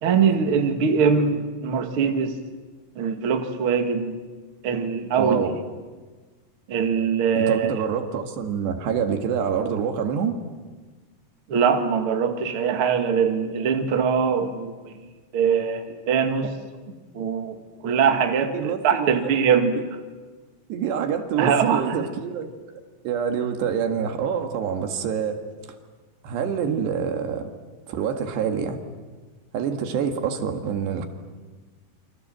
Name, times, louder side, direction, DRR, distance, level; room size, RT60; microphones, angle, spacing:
voice 1, 0.0-2.4 2.9-4.2 4.6-5.4 6.7-7.7 11.5-14.9 15.3-16.5 17.1-19.7 21.4-21.8, right 6 dB, 55° right, 5 dB, 1.6 m, -22 dB
voice 2, 5.1-5.6 7.4-10.4 17.2-17.3 18.5-19.3 20.7-25.4 26.2-27.5 27.9-28.8 29.5-31.1, right 7 dB, 70° right, 5 dB, 4.0 m, -26 dB
28.0 x 26.0 x 7.7 m, 1.4 s
omnidirectional pair, 5.2 m